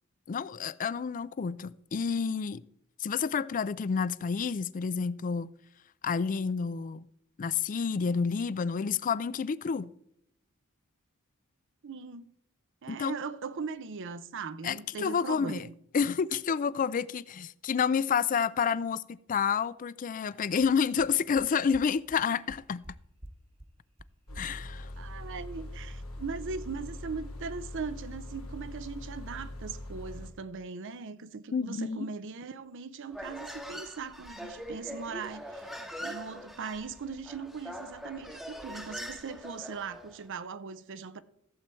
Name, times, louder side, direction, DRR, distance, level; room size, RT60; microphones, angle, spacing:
voice 1, 0.3-2.6 3.0-5.5 6.0-7.1 7.4-9.9 12.9-13.1 14.6-15.7 15.9-22.8 24.4-24.9 31.5-32.1, left 6 dB, 40° left, 0.4 m, -29 dB
voice 2, 11.8-12.3 12.8-15.7 24.3-24.4 25.0-35.7 36.0-41.2, right 5 dB, 60° right, 0.6 m, -39 dB
sound 1, 20.2-20.3 20.6-20.7 21.0-21.1 21.4-21.5 21.7-21.8 22.1-22.2 22.5-22.9 23.2-23.3 23.6-23.7 24.0-24.1 24.3-24.4, right 1 dB, 25° right, 1.0 m, -47 dB
sound 2, 24.3-30.3, left 1 dB, 90° left, 2.1 m, -42 dB
Human voice, 33.1-40.2, equal, ahead, 1.0 m, -42 dB
14.5 x 7.6 x 4.5 m
head